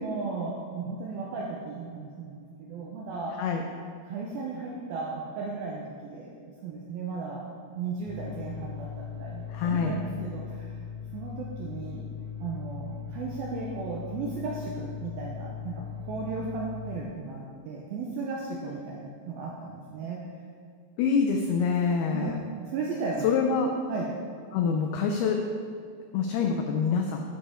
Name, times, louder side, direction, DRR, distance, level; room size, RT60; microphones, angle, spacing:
voice 1, 0.0-3.4 4.0-6.3 6.6-7.5 7.7-10.8 11.1-12.1 12.4-20.2 22.1-23.3 23.9-24.2, right 4 dB, 80° right, -2 dB, 2.2 m, -35 dB
sound 1, 8.0-17.0, left 7 dB, 25° left, 1.1 m, -39 dB
voice 2, 9.5-10.0 21.0-22.4 23.2-23.7 24.5-25.4 26.1-27.2, left 6 dB, 90° left, 3 dB, 2.2 m, -25 dB
11.0 x 6.9 x 4.3 m, 2.2 s
omnidirectional pair, 5.2 m